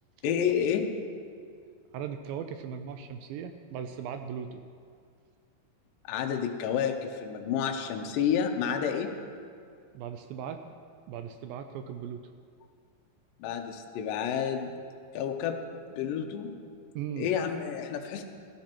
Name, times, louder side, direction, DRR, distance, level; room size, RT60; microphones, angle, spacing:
voice 1, 0.2-0.9 6.1-9.1 13.4-14.8 15.1-15.6 15.9-16.6 17.2-18.2, left 8 dB, 75° left, 4 dB, 2.2 m, -30 dB
voice 2, 1.9-4.6 9.9-10.8 11.1-12.2 17.0-17.3, right 8 dB, 80° right, 7 dB, 2.1 m, -38 dB
15.0 x 13.0 x 2.9 m, 2.2 s
omnidirectional pair, 4.3 m